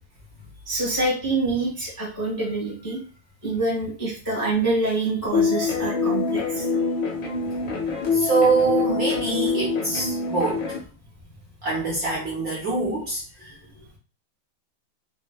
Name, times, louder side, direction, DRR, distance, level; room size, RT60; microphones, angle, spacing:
voice 1, 0.7-3.0 3.4-6.7, right 2 dB, 20° left, -5 dB, 0.6 m, -26 dB
sound 1, 5.3-10.8, left 4 dB, 65° left, 1.4 m, -25 dB
voice 2, 8.1-10.9 11.6-13.6, right 4 dB, 65° right, -5 dB, 1.0 m, -25 dB
4.1 x 2.1 x 2.3 m, 0.37 s
omnidirectional pair, 2.3 m